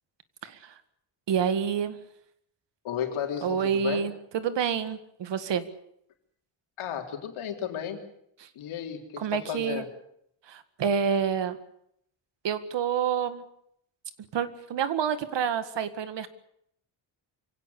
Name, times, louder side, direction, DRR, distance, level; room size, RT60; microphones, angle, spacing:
voice 1, 0.4-0.7 1.3-2.0 3.4-5.6 9.2-9.8 10.5-11.6 12.4-13.4 14.3-16.3, right 7 dB, 60° right, 12 dB, 1.9 m, -28 dB
voice 2, 2.8-4.0 6.8-8.0 8.5-9.9, left 9 dB, 85° left, 3 dB, 3.9 m, -33 dB
24.5 x 17.0 x 8.2 m, 0.72 s
cardioid pair, 150°, 48 cm